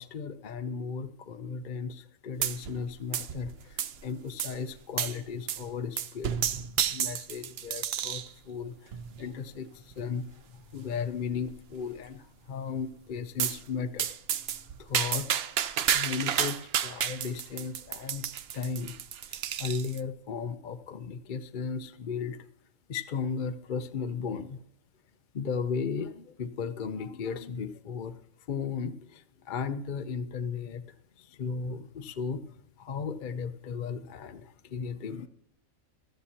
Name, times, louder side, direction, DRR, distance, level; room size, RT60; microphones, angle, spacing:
voice 1, 0.0-6.4 6.9-14.1 14.8-15.3 15.9-18.2 18.5-18.9 19.3-22.4 22.9-24.6 25.3-28.2 28.5-30.8 31.2-35.3, left 5 dB, 50° left, 9 dB, 0.6 m, -35 dB
sound 1, 2.4-2.9 3.1-4.0 4.4-4.5 5.0-5.2 5.5-5.7 6.0-8.3 8.9-9.3 9.9-10.0 10.3-10.4 10.7-10.8 11.3-11.7 13.4-13.6 14.0-20.0, right 9 dB, 60° right, 0.7 m, -31 dB
15.5 x 12.5 x 2.9 m, 0.67 s
omnidirectional pair, 1.4 m